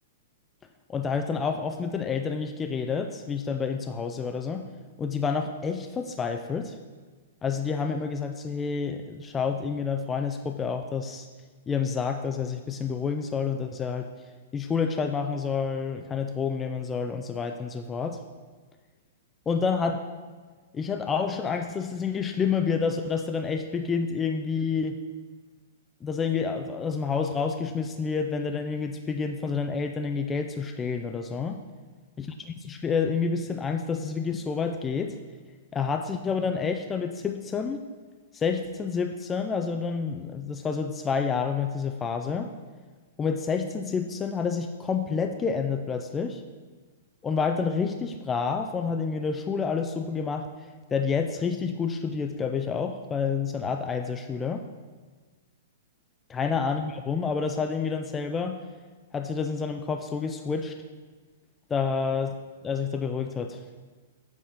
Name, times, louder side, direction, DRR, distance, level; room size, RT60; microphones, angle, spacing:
voice 1, 0.9-4.7 5.0-6.8 7.4-11.3 11.7-14.1 14.5-18.2 19.5-20.1 20.7-25.0 26.0-31.6 32.2-35.2 35.7-37.8 38.3-42.5 43.2-46.4 47.2-54.6 56.3-58.6 59.1-60.7 61.7-62.3 62.6-63.6, left 5 dB, 15° left, 5 dB, 0.3 m, -29 dB
7.6 x 3.5 x 4.1 m, 1.4 s
hypercardioid pair, 130°, 0 cm